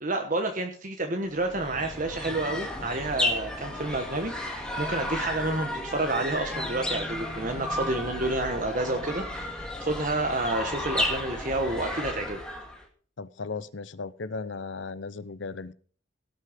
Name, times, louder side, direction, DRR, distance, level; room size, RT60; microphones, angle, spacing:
voice 1, 0.0-12.4, right 2 dB, 40° right, 4 dB, 1.3 m, -30 dB
sound 1, 1.3-12.8, left 1 dB, 5° left, 1.9 m, -33 dB
voice 2, 13.2-15.7, left 4 dB, 65° left, 15 dB, 0.7 m, -36 dB
17.5 x 6.7 x 5.1 m, 0.43 s
head